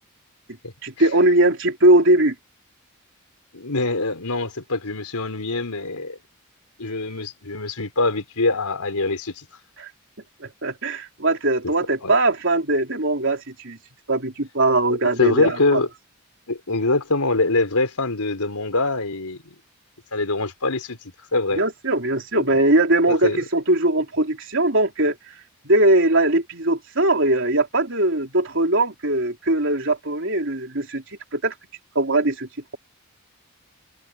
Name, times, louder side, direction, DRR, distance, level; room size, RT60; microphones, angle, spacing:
voice 1, 0.8-2.4 9.8-9.9 10.4-13.8 14.1-15.8 21.5-25.2 25.6-31.0 31.3-31.5 32.0-32.8, right 2 dB, 55° right, 3.8 m, -20 dB
voice 2, 3.5-6.2 6.8-9.5 12.0-12.1 15.2-15.9 16.5-19.4 20.1-21.0 21.3-21.6 22.3-22.4 23.1-23.4, left 2 dB, 90° left, 4.1 m, -24 dB
head